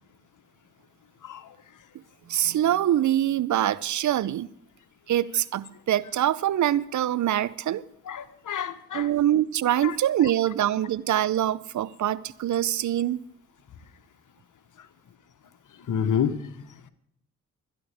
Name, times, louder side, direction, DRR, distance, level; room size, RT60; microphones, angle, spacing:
voice 1, 2.3-4.5 5.1-7.8 8.9-13.2, right 12 dB, 55° right, 19 dB, 0.6 m, -24 dB
voice 2, 8.1-9.1 9.8-9.9 15.9-16.4, left 8 dB, 60° left, 11 dB, 1.2 m, -28 dB
25.0 x 10.0 x 3.5 m, 0.75 s
hypercardioid pair, 45°, 36 cm